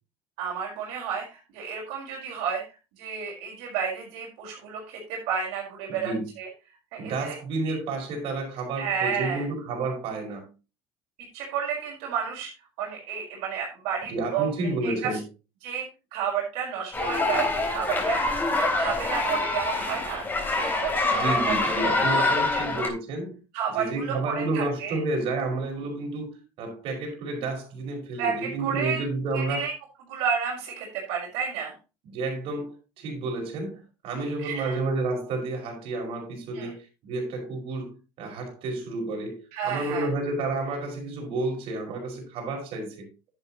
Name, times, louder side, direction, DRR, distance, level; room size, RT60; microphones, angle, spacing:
voice 1, 0.4-2.6 3.0-6.5 6.9-7.4 7.6-7.7 8.8-9.4 11.3-12.5 12.8-14.5 14.8-15.2 15.6-15.9 16.1-21.5 21.9-22.0 22.3-22.6 23.5-25.0 28.2-29.0 29.3-29.7 30.1-31.7 34.4-34.8 36.5-36.7 39.5-40.1, right 7 dB, 80° right, 4.6 m, -31 dB
voice 2, 5.9-6.3 7.0-10.5 14.0-15.2 21.2-23.4 23.7-29.6 32.0-43.1, right 2 dB, 65° right, 5.1 m, -31 dB
sound 1, 16.9-22.9, left 2 dB, 20° left, 3.6 m, -25 dB
10.5 x 9.1 x 3.0 m
cardioid pair, 110°, 10 cm